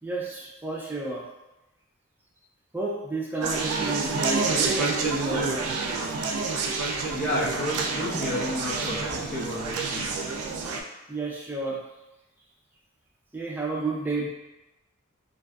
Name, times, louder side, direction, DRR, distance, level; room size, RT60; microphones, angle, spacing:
voice 1, 0.0-1.2 2.7-5.6 11.1-11.8 13.3-14.3, right 2 dB, 10° right, -5 dB, 0.4 m, -31 dB
Conversation, 3.4-10.8, right 4 dB, 85° right, 0.3 m, -28 dB
voice 2, 7.1-10.2, left 1 dB, 40° left, -8 dB, 0.8 m, -31 dB
2.6 x 2.4 x 2.2 m, 1.0 s
head